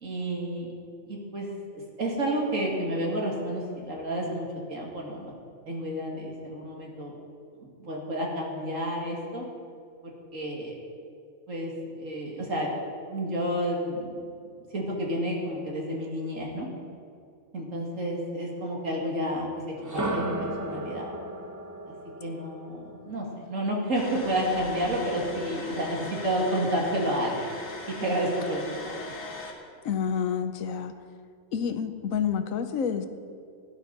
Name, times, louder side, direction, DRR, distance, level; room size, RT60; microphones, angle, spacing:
voice 1, 0.0-0.7 1.1-1.5 1.7-5.3 5.7-7.1 7.8-9.4 10.3-10.7 11.5-12.7 13.1-16.7 17.5-19.5 19.9-21.1 22.2-27.5 28.0-28.6 28.9-29.0, right 1 dB, 65° right, -2 dB, 2.6 m, -30 dB
sound 1, 19.8-23.7, right 1 dB, 15° right, 0.7 m, -34 dB
sound 2, 23.9-29.5, left 3 dB, 55° left, 1.9 m, -39 dB
voice 2, 29.8-30.9 31.5-33.1, left 7 dB, 75° left, 9 dB, 1.2 m, -28 dB
16.5 x 11.0 x 4.1 m, 2.4 s
omnidirectional pair, 1.4 m